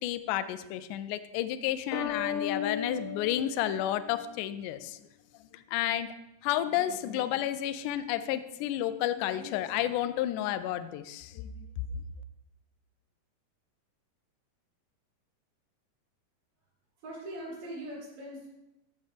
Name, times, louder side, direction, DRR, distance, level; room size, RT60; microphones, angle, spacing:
voice 1, 0.0-5.0 5.5-6.1 6.4-11.7, left 12 dB, 80° left, 12 dB, 1.9 m, -31 dB
sound 1, 1.9-4.6, left 7 dB, 60° left, 1.9 m, -35 dB
voice 2, 17.0-18.5, right 1 dB, 85° right, -4 dB, 4.3 m, -41 dB
13.5 x 6.8 x 3.5 m, 0.93 s
omnidirectional pair, 4.0 m